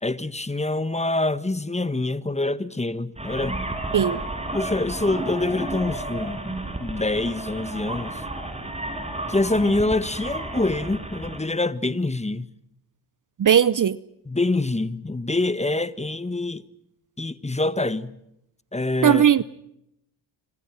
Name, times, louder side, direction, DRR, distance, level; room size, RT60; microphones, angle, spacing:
voice 1, 0.0-3.6 4.5-6.4 6.8-8.2 9.3-12.5 14.3-16.6 17.2-18.2 18.7-19.2, left 2 dB, 15° left, 1.5 m, -25 dB
sound 1, 3.2-11.4, right 1 dB, 15° right, 6.6 m, -32 dB
voice 2, 13.4-14.0 19.0-19.4, right 9 dB, 40° right, 0.9 m, -17 dB
26.5 x 26.0 x 6.0 m
supercardioid pair, 70°, 47 cm